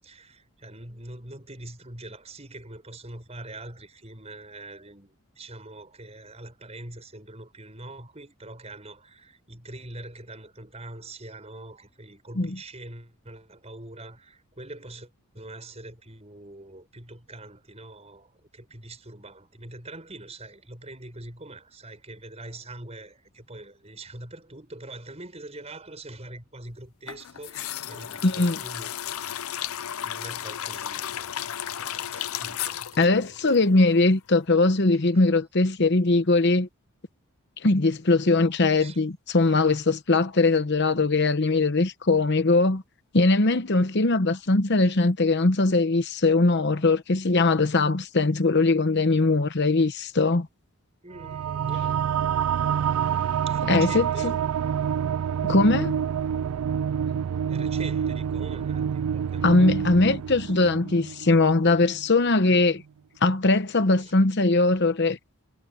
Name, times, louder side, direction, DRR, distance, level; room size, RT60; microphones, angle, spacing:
voice 1, 0.0-29.5 30.0-31.3 32.0-33.6 34.9-35.2 38.8-39.0 44.8-45.0 51.0-52.0 53.5-54.4 57.3-59.8 64.0-64.1, right 2 dB, 30° right, 6.5 m, -43 dB
sound 1, 27.1-34.1 34.3-34.4, left 11 dB, 75° left, 0.6 m, -34 dB
voice 2, 28.2-28.6 33.0-36.7 37.6-42.8 43.1-50.5 53.7-54.3 55.4-56.0 59.4-62.8 63.2-65.2, left 3 dB, 50° left, 0.9 m, -21 dB
sound 2, 51.1-62.1, right 8 dB, 85° right, 0.3 m, -27 dB
head